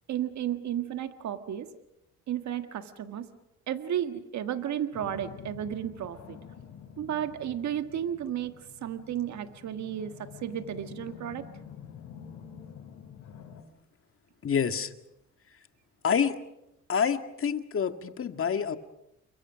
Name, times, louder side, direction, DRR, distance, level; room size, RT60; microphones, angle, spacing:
voice 1, 0.1-1.7 2.3-3.3 3.7-6.4 7.0-11.5, right 10 dB, 65° right, 8 dB, 1.6 m, -33 dB
sound 1, 4.9-13.6, left 8 dB, 70° left, 5.4 m, -48 dB
voice 2, 14.4-14.9 16.0-16.4 16.9-18.8, left 7 dB, 45° left, 8 dB, 1.9 m, -27 dB
29.5 x 23.0 x 6.3 m, 0.85 s
cardioid pair, 90°, 30 cm